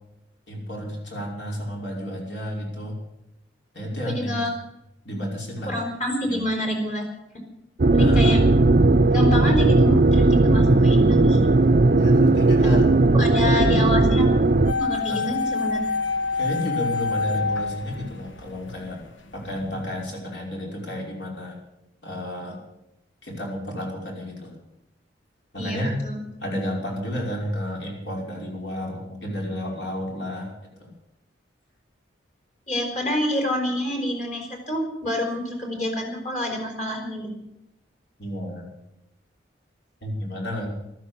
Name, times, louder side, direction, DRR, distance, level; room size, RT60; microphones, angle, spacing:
voice 1, 0.5-3.0 3.7-4.5 5.0-5.7 6.2-6.4 8.0-8.4 12.0-12.9 13.5-13.9 15.1-15.2 16.3-19.0 19.3-21.6 22.0-22.6 23.2-24.6 25.5-25.9 26.4-30.5 30.8-30.9 38.2-38.7 40.0-40.7, equal, 70° left, -1 dB, 5.5 m, -31 dB
voice 2, 4.1-4.5 5.7-7.0 7.3-7.4 7.9-8.4 9.1-11.4 12.6-12.8 13.1-14.3 14.8-15.8 25.6-26.2 32.7-37.3, left 1 dB, 40° left, 2 dB, 4.6 m, -27 dB
sound 1, 7.8-14.7, right 2 dB, 45° right, 0.6 m, -17 dB
sound 2, 14.7-18.8 19.0-19.1, left 4 dB, 85° left, 1.3 m, -27 dB
14.5 x 13.0 x 7.1 m, 0.87 s
head